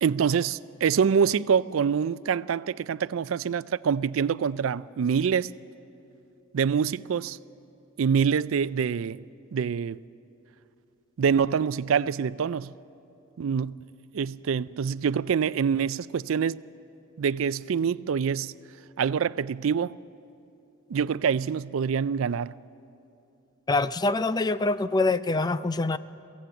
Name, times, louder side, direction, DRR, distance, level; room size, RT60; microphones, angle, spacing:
voice 1, 0.0-5.5 6.5-7.4 8.0-9.2 9.5-10.0 11.2-12.7 13.4-13.8 14.1-16.6 17.2-18.5 19.0-20.0 20.9-22.5, right 7 dB, 75° right, 0.4 m, -25 dB
voice 2, 23.7-26.0, left 3 dB, 20° left, 0.4 m, -25 dB
23.5 x 16.0 x 8.2 m
head